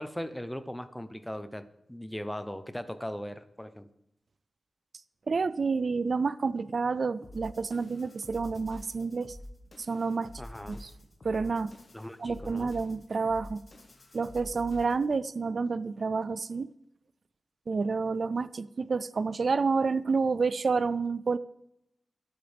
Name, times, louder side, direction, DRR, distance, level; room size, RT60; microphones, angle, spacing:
voice 1, 0.0-3.9 10.4-10.8 11.9-12.7, equal, 5° left, 0.8 m, -39 dB
voice 2, 5.3-9.4 9.8-10.3 10.7-10.9 11.2-11.7 12.2-13.6 14.1-16.7 17.7-21.4, right 4 dB, 55° right, 0.4 m, -29 dB
sound 1, 7.2-15.1, left 1 dB, 45° left, 1.6 m, -48 dB
23.5 x 8.7 x 3.5 m
wide cardioid pair, 125°, 0 cm